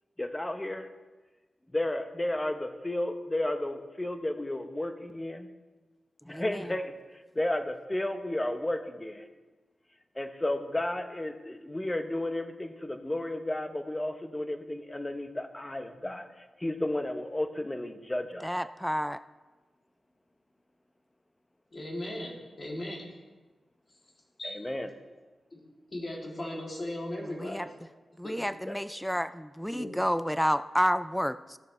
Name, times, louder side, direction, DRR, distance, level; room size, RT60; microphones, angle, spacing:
voice 1, 0.2-0.9 1.7-5.5 6.3-6.9 7.3-9.2 10.2-18.6 24.4-24.9 28.7-28.8, left 1 dB, 25° left, 7 dB, 1.0 m, -33 dB
voice 2, 6.3-6.6 18.4-19.2 27.4-27.7 28.2-31.6, equal, ahead, 14 dB, 0.3 m, -30 dB
voice 3, 21.7-23.1 24.4-24.6 25.5-25.6 25.9-27.7 28.2-28.5 29.7-29.9, left 1 dB, 50° left, -2 dB, 2.8 m, -37 dB
15.5 x 6.6 x 3.3 m, 1.2 s
supercardioid pair, 40°, 0 cm